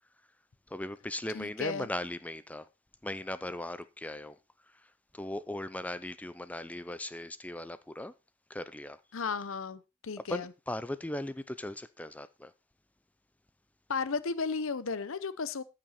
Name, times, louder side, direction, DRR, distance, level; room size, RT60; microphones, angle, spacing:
voice 1, 0.7-2.7 3.0-4.4 4.8-8.1 8.5-9.0 10.3-12.5, left 1 dB, 5° left, 0.4 m, -38 dB
voice 2, 1.3-1.9 9.1-10.5 13.9-15.6, left 4 dB, 65° left, 0.7 m, -34 dB
14.0 x 6.0 x 4.2 m
head